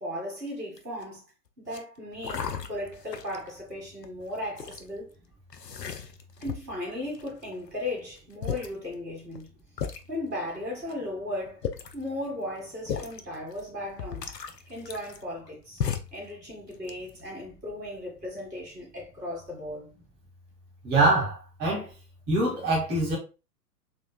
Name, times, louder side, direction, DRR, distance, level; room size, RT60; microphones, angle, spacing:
voice 1, 0.0-1.3 1.6-5.1 6.4-9.5 10.1-11.7 11.9-14.3 14.7-15.8 16.1-19.9, left 1 dB, 85° right, 1.9 m, -36 dB
sound 1, 0.8-1.2 1.7-1.8 2.2-3.5 4.0-4.8 5.5-6.8 7.1-7.7 8.2-8.3 8.4-8.7 9.3-9.4 9.8-10.0 10.9-11.0 11.5-12.0 12.9-13.2 13.6-13.7 14.0-15.5 15.8-16.2 16.7-17.3, left 7 dB, 85° left, 0.6 m, -35 dB
voice 2, 20.8-21.9 22.3-23.2, right 2 dB, 20° right, 1.8 m, -24 dB
4.2 x 3.1 x 2.2 m
figure-of-eight pair, 115°, 48 cm